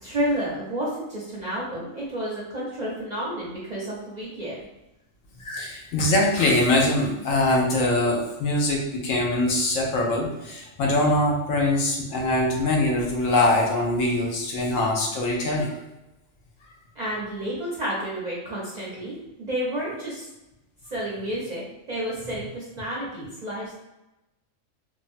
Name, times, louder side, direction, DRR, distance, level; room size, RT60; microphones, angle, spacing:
voice 1, 0.0-4.6 17.0-20.3 20.9-23.8, right 1 dB, 45° right, -7 dB, 0.6 m, -30 dB
voice 2, 5.4-15.7, left 1 dB, 75° left, -1 dB, 1.0 m, -23 dB
2.8 x 2.1 x 2.5 m, 0.97 s
omnidirectional pair, 1.4 m